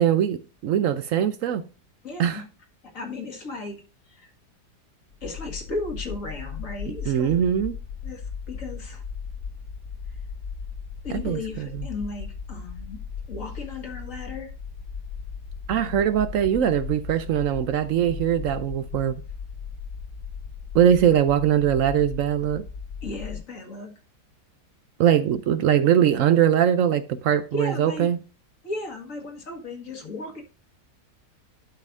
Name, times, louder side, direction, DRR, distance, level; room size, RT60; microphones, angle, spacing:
voice 1, 0.0-1.6 2.2-2.4 7.1-7.8 11.1-11.8 15.7-19.2 20.7-22.6 25.0-28.2, right 10 dB, 70° right, 0.8 m, -21 dB
voice 2, 2.0-2.5 2.8-4.3 5.2-7.5 8.0-9.0 11.0-13.0 13.3-14.5 23.0-23.9 27.5-28.1 28.6-30.4, left 3 dB, 50° left, 2.0 m, -35 dB
sound 1, 5.1-23.4, left 6 dB, 85° left, 4.4 m, -37 dB
11.5 x 5.4 x 2.6 m
omnidirectional pair, 1.8 m